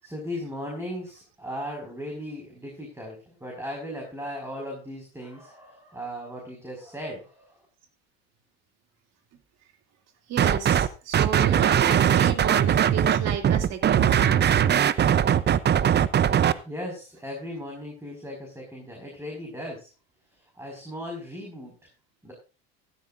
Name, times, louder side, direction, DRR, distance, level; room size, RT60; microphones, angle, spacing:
voice 1, 0.0-7.5 16.6-19.9 20.6-21.7 22.2-22.3, equal, 10° right, 0 dB, 5.4 m, -37 dB
voice 2, 10.3-14.5, right 7 dB, 55° right, 5 dB, 2.8 m, -32 dB
sound 1, 10.4-10.9 11.1-16.5, right 9 dB, 35° right, 0.7 m, -20 dB
15.0 x 12.5 x 2.6 m, 0.33 s
hypercardioid pair, 75°, 31 cm